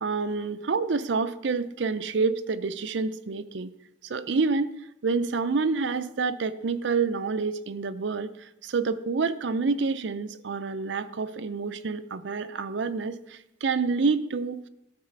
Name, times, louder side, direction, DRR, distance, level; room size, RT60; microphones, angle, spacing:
voice 1, 0.0-3.7 4.0-4.8 5.0-14.6, right 4 dB, 65° right, 12 dB, 0.5 m, -28 dB
13.0 x 4.8 x 6.6 m, 0.86 s
head